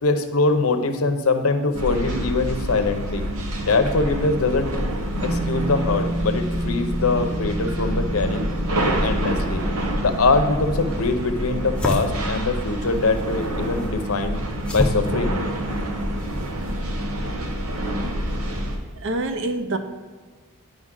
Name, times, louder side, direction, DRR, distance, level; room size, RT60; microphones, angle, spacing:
voice 1, 0.0-3.2 3.6-4.9 5.2-8.5 8.8-9.6 10.0-14.4 14.7-15.4, left 3 dB, 75° left, 7 dB, 0.7 m, -23 dB
sound 1, 1.7-18.8, right 1 dB, 75° right, 0.8 m, -27 dB
sound 2, 5.1-13.6, right 1 dB, 40° right, 2.5 m, -32 dB
sound 3, 11.6-16.8, left 1 dB, 5° left, 0.5 m, -32 dB
voice 2, 17.5-17.9 19.0-19.8, right 2 dB, 55° right, 8 dB, 0.5 m, -27 dB
9.5 x 5.1 x 3.7 m, 1.4 s
head